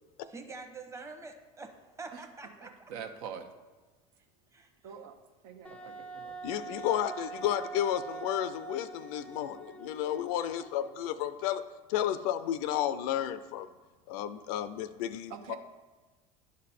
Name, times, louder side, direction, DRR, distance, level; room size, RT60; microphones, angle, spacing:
voice 1, 0.2-1.7 2.0-2.7 4.5-4.7, right 3 dB, 15° right, 4 dB, 1.0 m, -45 dB
voice 2, 2.9-3.5 4.8-5.2 5.4-6.4 15.3-15.6, right 7 dB, 75° right, 7 dB, 1.0 m, -43 dB
Wind instrument woodwind instrument, 5.6-11.1, right 5 dB, 5° left, 0.5 m, -44 dB
voice 3, 6.4-11.6 11.9-13.7 14.1-15.6, left 11 dB, 75° left, 12 dB, 0.5 m, -32 dB
10.5 x 5.2 x 4.2 m, 1.3 s
supercardioid pair, 105°, 19 cm